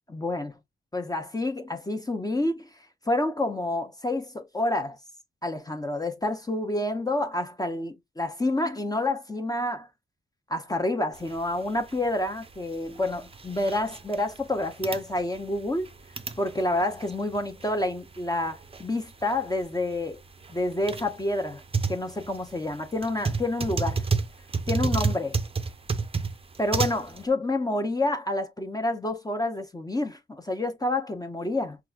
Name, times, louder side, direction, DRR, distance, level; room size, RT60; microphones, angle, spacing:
voice 1, 0.1-0.5 0.9-2.6 3.1-5.0 5.4-9.9 10.5-15.9 16.4-20.2 20.5-21.6 21.9-24.0 24.7-25.3 26.6-31.8, left 1 dB, 20° left, 0.6 m, -28 dB
sound 1, 11.2-27.2, right 4 dB, 30° right, 0.5 m, -32 dB
5.6 x 2.4 x 2.3 m
wide cardioid pair, 95°, 20 cm